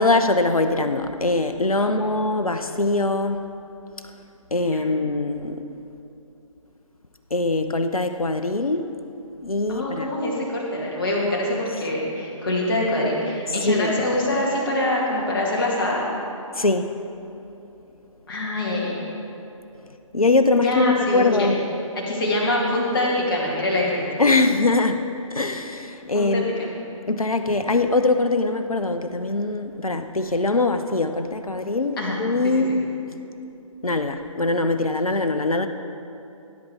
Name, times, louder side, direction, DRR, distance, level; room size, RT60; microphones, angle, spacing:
voice 1, 0.0-3.4 4.5-5.6 7.3-8.9 9.4-10.1 13.7-13.9 16.6-16.9 20.1-21.6 24.2-25.0 25.3-26.5 27.1-32.9 33.8-35.7, left 2 dB, 90° left, 8 dB, 0.6 m, -22 dB
voice 2, 1.8-2.1 4.7-4.9 9.7-16.0 18.3-19.0 20.6-21.5 22.1-24.1 26.1-26.7 32.0-32.2 32.4-32.6, left 1 dB, 40° left, -3 dB, 2.3 m, -24 dB
16.0 x 8.2 x 3.5 m, 2.8 s
figure-of-eight pair, 140°, 18 cm